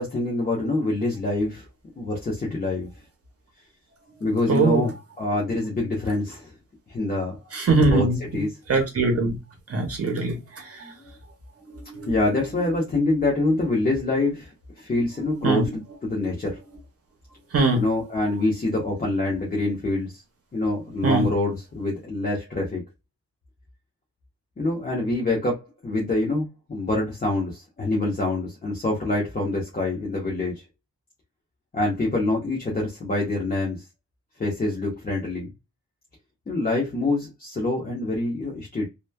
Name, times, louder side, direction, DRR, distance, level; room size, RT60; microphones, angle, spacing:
voice 1, 0.0-1.6 2.0-2.9 4.2-4.9 5.2-6.5 6.9-7.4 7.8-8.6 10.8-11.0 12.1-16.6 17.7-20.2 20.5-22.8 24.6-30.6 31.7-33.8 34.4-35.5 36.5-38.9, left 2 dB, 30° left, 0.8 m, -26 dB
voice 2, 4.5-4.8 7.5-8.2 8.7-9.4 9.7-10.4 15.4-15.6 17.5-17.8 21.0-21.3, right 3 dB, 50° right, 0.7 m, -20 dB
3.0 x 2.1 x 2.2 m
wide cardioid pair, 145°, 31 cm